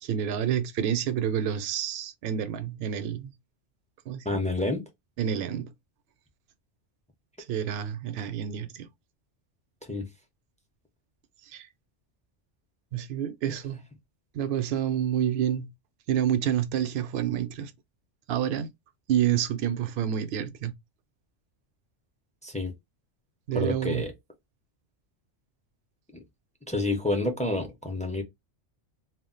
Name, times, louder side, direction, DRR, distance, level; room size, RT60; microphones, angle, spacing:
voice 1, 0.0-3.3 4.1-4.4 5.2-5.7 7.5-8.9 11.5-11.7 12.9-13.8 14.3-15.7 16.1-17.7 18.3-18.7 19.1-20.7 23.5-24.0, right 9 dB, 65° right, 0.7 m, -28 dB
voice 2, 4.2-4.9 9.9-10.1 22.4-22.7 23.5-24.1 26.1-26.2 26.7-28.2, left 2 dB, 10° left, 0.4 m, -29 dB
2.3 x 2.1 x 3.6 m
omnidirectional pair, 1.2 m